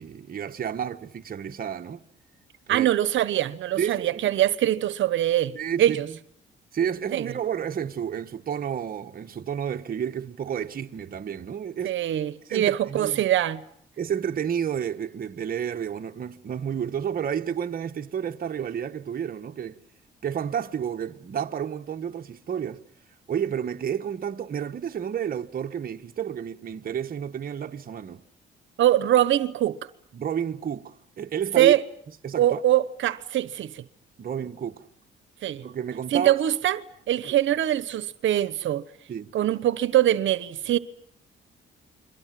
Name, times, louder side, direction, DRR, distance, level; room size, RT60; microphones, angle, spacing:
voice 1, 0.0-2.0 2.7-2.9 3.8-4.4 5.5-6.2 6.7-12.0 12.5-13.3 14.0-19.8 20.2-22.8 23.3-28.2 30.1-31.7 32.2-32.6 34.2-34.9 35.6-36.3 37.2-37.3 39.1-39.3, right 8 dB, 50° right, 1.4 m, -31 dB
voice 2, 2.7-6.1 7.1-7.2 11.8-13.6 28.8-29.8 31.6-31.8 32.4-33.8 35.4-35.6 36.1-38.8 39.3-40.8, right 12 dB, 75° right, 1.1 m, -23 dB
29.0 x 23.0 x 7.7 m
cardioid pair, 90°, 20 cm